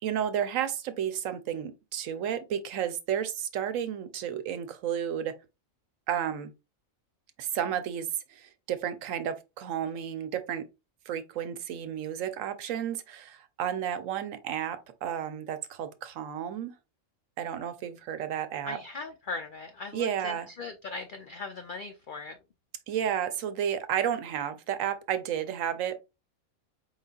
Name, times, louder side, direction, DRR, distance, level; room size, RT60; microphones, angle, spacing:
voice 1, 0.0-5.3 6.1-6.5 7.4-10.6 11.1-16.7 17.4-18.8 19.9-20.5 22.9-26.0, right 9 dB, 70° right, 1.0 m, -32 dB
voice 2, 18.6-22.4, left 3 dB, 75° left, 0.4 m, -39 dB
4.6 x 4.0 x 2.3 m
omnidirectional pair, 1.4 m